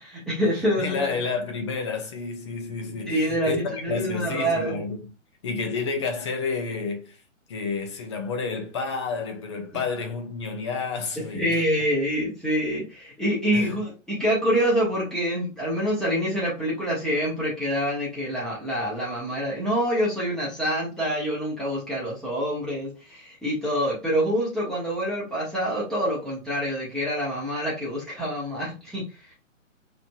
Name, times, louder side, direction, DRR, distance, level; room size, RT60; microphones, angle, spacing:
voice 1, 0.0-1.1 3.0-4.8 11.3-29.0, equal, ahead, 1.3 m, -26 dB
voice 2, 0.8-5.1 5.4-7.2 7.5-11.6 13.5-13.8, left 4 dB, 25° left, 0.6 m, -30 dB
4.9 x 3.2 x 2.3 m
figure-of-eight pair, 130°, 39 cm